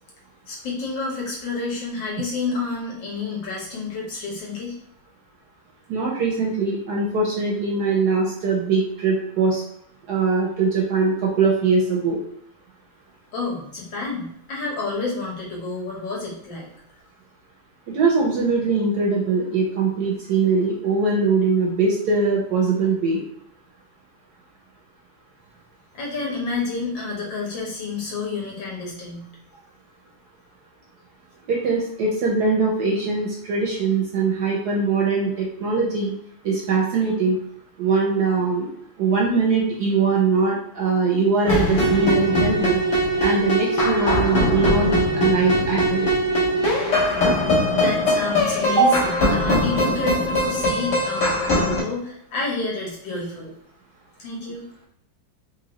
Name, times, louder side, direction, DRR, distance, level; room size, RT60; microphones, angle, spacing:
voice 1, 0.5-4.7 13.3-16.7 25.9-29.6 47.8-53.5 54.2-54.6, left 3 dB, 70° left, -4 dB, 1.8 m, -29 dB
voice 2, 5.9-9.6 10.1-12.2 17.9-23.2 31.5-36.1 36.4-37.4 37.8-38.7 39.0-42.8 43.2-46.1 48.7-48.9, right 4 dB, 70° right, -1 dB, 1.0 m, -21 dB
sound 1, 41.4-51.8, equal, 50° left, 1.3 m, -21 dB
4.0 x 2.6 x 3.0 m, 0.69 s
omnidirectional pair, 2.2 m